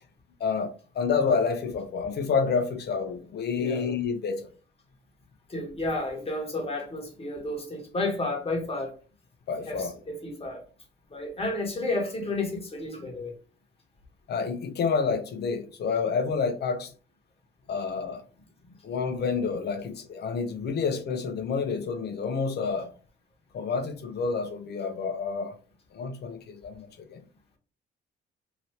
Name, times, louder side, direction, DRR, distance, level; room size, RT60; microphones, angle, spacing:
voice 1, 0.4-4.4 9.5-9.9 14.3-16.9 17.7-18.2 18.8-22.9 23.5-25.5 25.9-27.2, left 5 dB, 55° left, 0.7 m, -29 dB
voice 2, 5.5-8.9 9.6-10.6 11.1-13.3, left 2 dB, 30° left, 1.3 m, -31 dB
2.9 x 2.6 x 3.2 m
cardioid pair, 90°, 20 cm